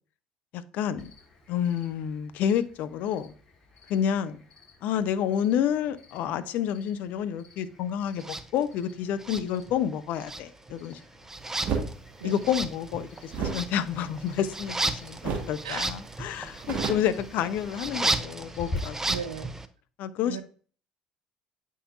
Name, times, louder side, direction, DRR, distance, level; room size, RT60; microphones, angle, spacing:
voice 1, 0.5-1.1 1.5-3.3 3.9-4.4 4.8-11.0 12.2-19.0 20.0-20.4, left 9 dB, 60° left, 0.5 m, -29 dB
Cricket, 1.0-18.8, left 3 dB, 35° left, 3.6 m, -48 dB
sound 1, 8.2-8.4 9.2-9.9 10.2-19.7, right 2 dB, 15° right, 0.6 m, -34 dB
sound 2, 11.6-11.9 13.3-14.8 15.2-15.6 15.9-16.0 16.3-17.9, right 5 dB, 55° right, 1.3 m, -32 dB
voice 2, 19.1-19.5 20.2-20.4, right 8 dB, 85° right, 0.5 m, -36 dB
8.4 x 5.4 x 2.4 m
hypercardioid pair, 60°, 3 cm